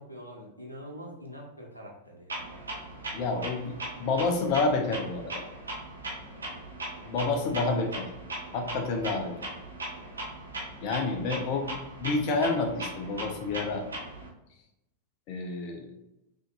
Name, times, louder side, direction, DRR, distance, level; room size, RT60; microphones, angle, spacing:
voice 1, 0.0-2.4 6.1-6.3, equal, 85° left, -1 dB, 0.9 m, -45 dB
Clock, 2.3-14.3, right 1 dB, 75° right, 1.1 m, -39 dB
voice 2, 3.1-5.4 7.0-8.1 8.5-9.3 10.8-11.7 12.0-13.8 15.3-15.9, left 3 dB, 45° left, 4 dB, 0.8 m, -29 dB
6.1 x 2.8 x 2.5 m, 0.91 s
figure-of-eight pair, 90°, 0 cm